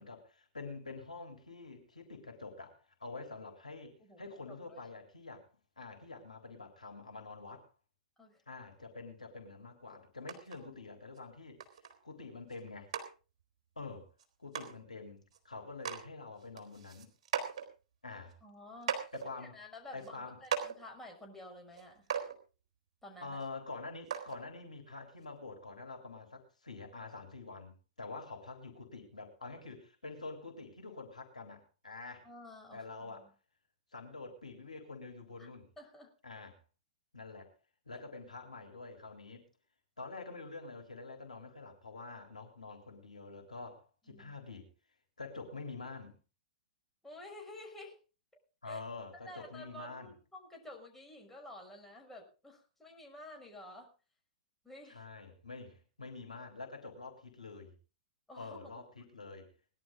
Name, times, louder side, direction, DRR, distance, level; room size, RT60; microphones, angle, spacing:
voice 1, 0.0-5.5 5.8-7.7 8.5-11.6 12.0-12.9 13.8-14.1 14.4-17.1 18.0-18.4 19.1-19.6 19.9-20.4 23.2-32.3 32.7-33.3 33.9-35.7 36.2-36.6 37.1-37.5 37.9-39.5 40.0-44.7 45.2-46.2 48.6-50.1 54.9-57.7 58.4-59.5, left 3 dB, 80° left, 4 dB, 3.6 m, -47 dB
voice 2, 4.0-4.8 8.2-8.4 10.5-10.8 18.4-19.0 19.4-22.0 23.0-23.4 32.2-33.3 35.4-35.5 35.8-36.1 44.1-44.3 47.0-48.0 48.7-48.8 49.1-53.9 54.6-55.0 58.3-59.1, left 1 dB, 5° left, -1 dB, 5.9 m, -51 dB
sound 1, 10.3-10.6 11.2-11.3 11.6-11.9 12.5-12.6 12.9-13.1 14.2-14.3 14.5-14.7 15.3-15.4 15.7-16.0 16.4-17.7 18.3-18.4 18.8-19.3 20.0-20.1 20.4-20.8 21.7-21.8 22.1-22.4 23.4-23.5 24.1-24.4 25.2-25.3, right 7 dB, 50° right, 3.5 m, -37 dB
20.0 x 11.5 x 3.7 m, 0.34 s
figure-of-eight pair, 105°, 4 cm